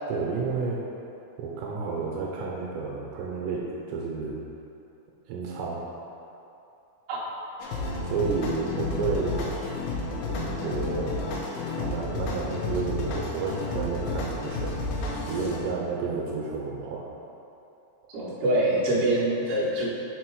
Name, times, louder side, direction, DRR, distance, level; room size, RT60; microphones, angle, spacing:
voice 1, 0.1-0.8 1.4-4.4 5.3-5.8 8.0-9.5 10.3-11.2 11.8-14.8 15.2-17.1, right 4 dB, 80° right, -3 dB, 2.8 m, -31 dB
sound 1, 7.6-15.6, left 3 dB, 80° left, 2.1 m, -31 dB
voice 2, 18.1-19.9, right 1 dB, 65° right, -8 dB, 2.0 m, -24 dB
6.2 x 4.4 x 4.6 m, 2.9 s
omnidirectional pair, 5.3 m